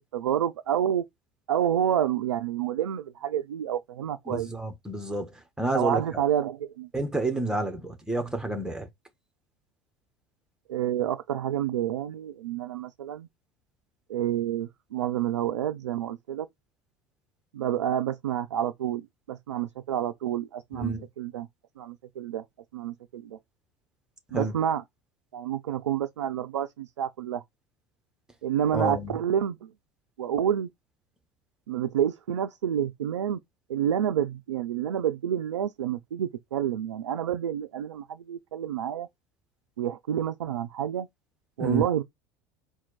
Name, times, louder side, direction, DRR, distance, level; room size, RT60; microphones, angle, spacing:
voice 1, 0.1-1.0 1.5-4.5 5.7-6.9 10.7-13.3 14.1-16.5 17.5-21.5 21.8-22.4 22.7-23.4 24.3-24.8 25.3-27.4 28.4-29.7 30.2-30.7 31.7-33.4 33.7-39.1 39.8-41.1 41.6-42.0, right 10 dB, 75° right, 0.4 m, -29 dB
voice 2, 4.3-5.3 5.6-6.0 6.9-8.9 20.7-21.0 24.3-24.5 28.7-29.1 41.6-41.8, right 2 dB, 5° right, 1.1 m, -29 dB
4.3 x 2.3 x 4.0 m
figure-of-eight pair, 70°, 15 cm